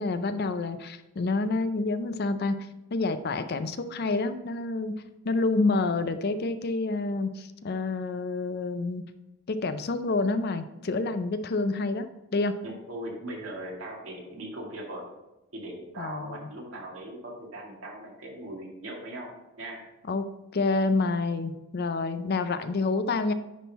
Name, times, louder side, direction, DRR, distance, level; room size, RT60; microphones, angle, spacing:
voice 1, 0.0-2.6 2.9-4.9 5.2-9.0 9.5-12.6 16.0-16.5 20.1-20.3 20.5-23.3, left 3 dB, 50° left, 10 dB, 0.5 m, -28 dB
voice 2, 12.6-15.1 15.5-19.8, right 1 dB, 65° right, -2 dB, 2.1 m, -39 dB
10.0 x 3.7 x 4.1 m, 0.98 s
head